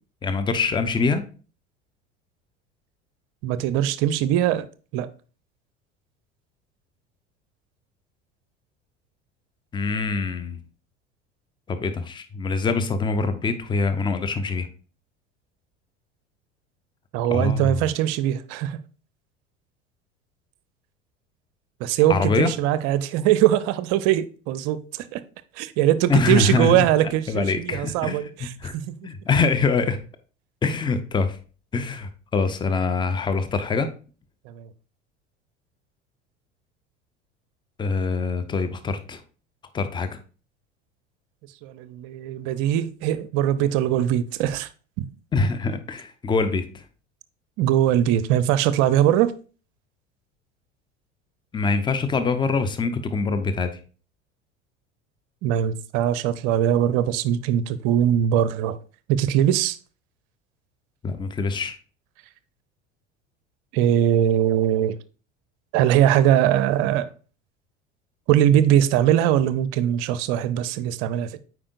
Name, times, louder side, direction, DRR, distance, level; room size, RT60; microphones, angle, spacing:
voice 1, 0.2-1.2 9.7-10.6 11.7-14.7 17.3-17.7 22.1-22.5 26.1-26.9 27.3-28.7 29.0-30.0 30.6-31.4 31.7-33.9 37.8-39.2 39.7-40.1 45.3-46.8 51.5-53.8 61.0-61.8, left 4 dB, 15° left, 0.7 m, -24 dB
voice 2, 3.4-4.7 4.9-5.1 17.1-18.8 21.8-25.2 25.6-28.9 34.5-34.7 41.6-44.7 45.0-45.1 47.6-49.3 55.4-58.8 59.1-59.8 63.7-64.9 65.7-67.1 68.3-71.4, right 11 dB, 45° right, 0.6 m, -21 dB
8.6 x 4.7 x 2.6 m
figure-of-eight pair, 70°, 36 cm